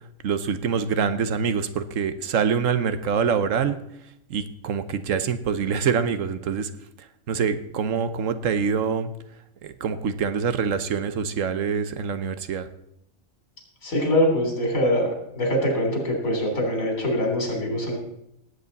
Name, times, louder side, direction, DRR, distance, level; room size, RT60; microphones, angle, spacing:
voice 1, 0.2-3.8 4.3-6.7 7.3-9.1 9.6-12.7, right 6 dB, 75° right, 11 dB, 1.2 m, -25 dB
voice 2, 13.8-15.1 15.4-18.0, left 1 dB, 85° left, 2 dB, 3.8 m, -23 dB
18.0 x 8.2 x 4.1 m, 0.79 s
omnidirectional pair, 1.4 m